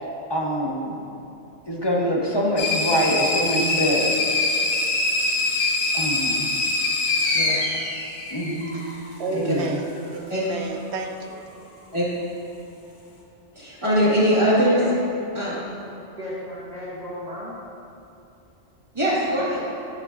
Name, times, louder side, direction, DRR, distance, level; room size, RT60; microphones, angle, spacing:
voice 1, 0.3-1.0 1.7-4.2 5.9-6.5 8.3-8.8 9.3-9.7, equal, 25° left, -2 dB, 0.6 m, -24 dB
sound 1, 2.6-9.0, left 2 dB, 70° left, 1.1 m, -24 dB
voice 2, 8.7-11.5, right 3 dB, 70° right, 4 dB, 0.8 m, -32 dB
voice 3, 13.5-14.8 15.3-15.6 18.9-19.7, equal, 25° right, -9 dB, 1.7 m, -21 dB
voice 4, 14.5-14.9 16.0-17.5 19.4-19.5, left 1 dB, 40° right, -6 dB, 0.8 m, -35 dB
8.4 x 7.3 x 2.4 m, 2.6 s
omnidirectional pair, 1.2 m